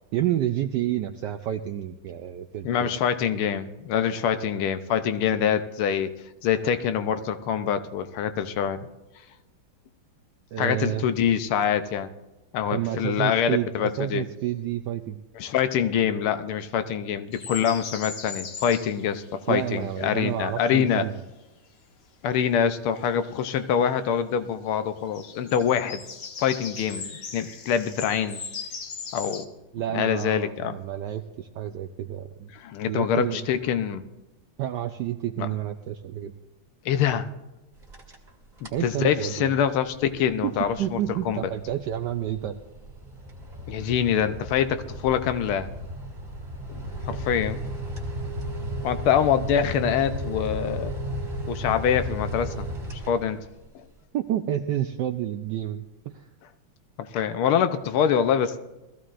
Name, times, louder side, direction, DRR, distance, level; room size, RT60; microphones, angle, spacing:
voice 1, 0.1-2.9 10.5-11.0 12.7-15.2 19.5-21.2 29.7-32.5 32.9-33.5 34.6-36.3 38.7-39.5 40.4-40.5 40.8-42.5 54.1-56.2, right 12 dB, 75° right, 7 dB, 1.0 m, -29 dB
voice 2, 2.6-6.1 6.4-8.8 10.6-12.1 12.5-14.2 15.4-21.1 22.2-26.0 26.4-28.4 29.1-29.5 29.9-30.8 32.5-34.1 35.4-35.5 36.8-37.3 38.6-41.0 41.2-41.5 43.7-45.7 46.7-46.8 47.1-47.6 48.8-50.9 51.5-52.7 52.9-53.4 53.7-53.9 57.0-58.6, left 8 dB, 85° left, 10 dB, 1.6 m, -25 dB
sound 1, 17.3-20.1 23.0-23.7 25.0-29.5, left 5 dB, 60° left, 0.6 m, -39 dB
sound 2, 37.8-38.3 38.6-38.9 39.4-53.7, equal, 20° right, 1.6 m, -35 dB
21.0 x 14.5 x 2.5 m, 1.1 s
omnidirectional pair, 2.3 m